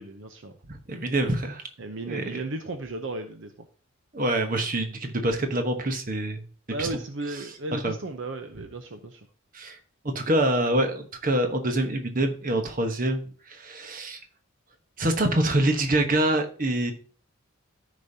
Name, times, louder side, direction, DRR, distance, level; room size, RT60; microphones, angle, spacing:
voice 1, 0.0-0.5 1.8-3.7 6.7-9.3, right 2 dB, 65° right, 7 dB, 0.7 m, -35 dB
voice 2, 0.7-1.6 2.0-2.4 4.1-6.4 6.8-6.9 7.7-7.9 9.5-9.8 10.0-14.2 15.0-16.9, right 1 dB, 40° right, 6 dB, 1.1 m, -26 dB
13.5 x 5.1 x 2.8 m, 0.42 s
head